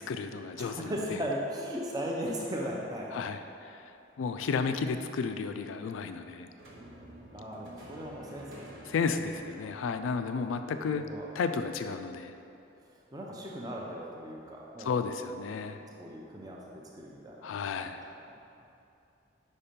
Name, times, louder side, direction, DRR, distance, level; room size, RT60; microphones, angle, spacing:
voice 1, 0.0-1.2 3.1-3.8 4.2-6.5 8.9-11.1 11.4-12.3 14.8-15.8 17.4-18.0, left 5 dB, 80° left, 8 dB, 0.3 m, -33 dB
voice 2, 0.6-3.2 7.3-8.8 10.9-11.3 12.8-15.1 15.6-16.6 16.9-17.5 17.7-17.9 18.2-18.3, equal, 20° right, -2 dB, 0.6 m, -38 dB
sound 1, 6.6-11.8, right 1 dB, 80° right, 1.0 m, -51 dB
5.2 x 4.3 x 5.1 m, 2.7 s
head